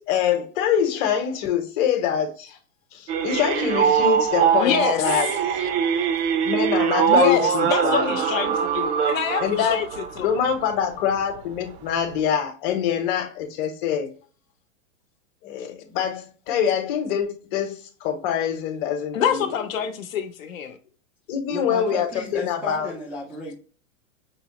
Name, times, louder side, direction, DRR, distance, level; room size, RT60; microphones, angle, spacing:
voice 1, 0.1-2.6 2.9-5.6 6.4-8.2 9.4-9.8 10.2-14.1 15.4-19.4 21.3-22.9, left 8 dB, 40° left, 1.0 m, -25 dB
sound 1, 3.1-10.7 11.2-11.4 11.9-12.0 12.2-12.3, right 8 dB, 45° right, 0.6 m, -22 dB
voice 2, 4.5-5.3 7.1-10.3 19.1-20.8, left 8 dB, 75° left, 0.8 m, -26 dB
voice 3, 21.5-23.5, left 2 dB, 5° right, 0.3 m, -34 dB
5.5 x 2.0 x 2.9 m
hypercardioid pair, 130°, 40 cm